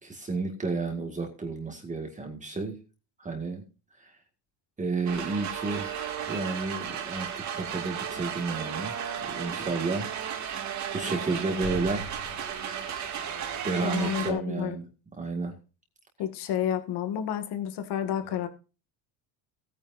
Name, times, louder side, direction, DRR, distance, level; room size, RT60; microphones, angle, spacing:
voice 1, 0.0-2.8 3.2-3.6 4.0-4.1 4.8-10.1 10.9-12.0 13.6-14.9 15.2-15.6 18.3-18.4, right 3 dB, 15° right, 2.0 m, -32 dB
sound 1, 5.1-14.3, right 8 dB, 40° right, 2.4 m, -34 dB
voice 2, 13.8-14.8 16.2-18.5, left 9 dB, 65° left, 2.2 m, -30 dB
18.0 x 9.5 x 2.7 m
cardioid pair, 170°, 43 cm